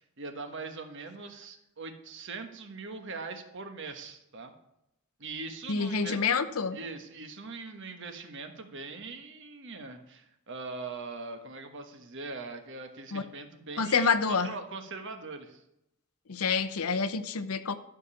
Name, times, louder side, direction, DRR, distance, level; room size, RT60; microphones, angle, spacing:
voice 1, 0.0-4.5 5.2-6.2 6.7-15.6, right 3 dB, 55° right, 6 dB, 1.3 m, -41 dB
voice 2, 5.7-6.8 13.1-13.2 13.8-14.5 16.3-17.7, left 5 dB, 80° left, 11 dB, 0.8 m, -27 dB
13.0 x 5.0 x 7.1 m, 0.82 s
head